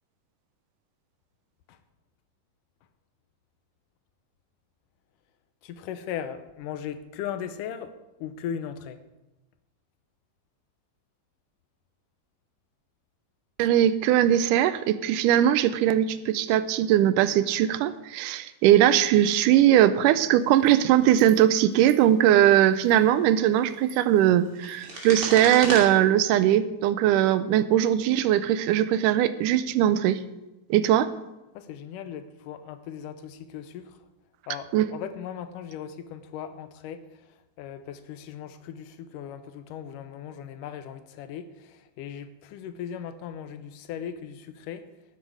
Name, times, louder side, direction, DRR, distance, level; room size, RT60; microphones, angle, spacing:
voice 1, 5.6-7.9 8.2-9.0 31.5-34.0 34.5-44.9, left 9 dB, 85° left, 11 dB, 2.3 m, -38 dB
voice 2, 13.6-30.2 30.7-31.1 34.7-34.9, right 11 dB, 85° right, 14 dB, 2.1 m, -20 dB
sound 1, 20.5-20.7 21.1-21.4 21.7-21.9 22.7-23.0 23.6-25.8, right 2 dB, 35° right, 2.8 m, -36 dB
12.0 x 9.8 x 4.8 m, 1.0 s
omnidirectional pair, 3.7 m